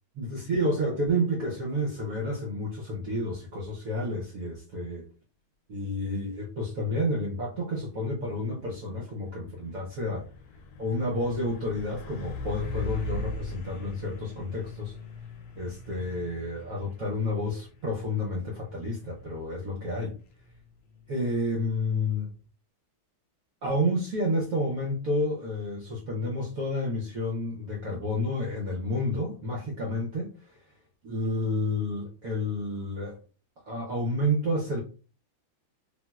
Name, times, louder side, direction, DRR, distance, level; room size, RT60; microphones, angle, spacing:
voice 1, 0.2-5.0 5.7-10.3 10.8-14.9 15.5-20.2 21.1-22.3 23.6-30.6 31.0-33.2 33.6-34.8, left 1 dB, 70° right, -2 dB, 0.8 m, -30 dB
Truck, 8.2-22.5, left 2 dB, 70° left, 1.2 m, -41 dB
3.4 x 2.6 x 2.2 m, 0.37 s
omnidirectional pair, 2.3 m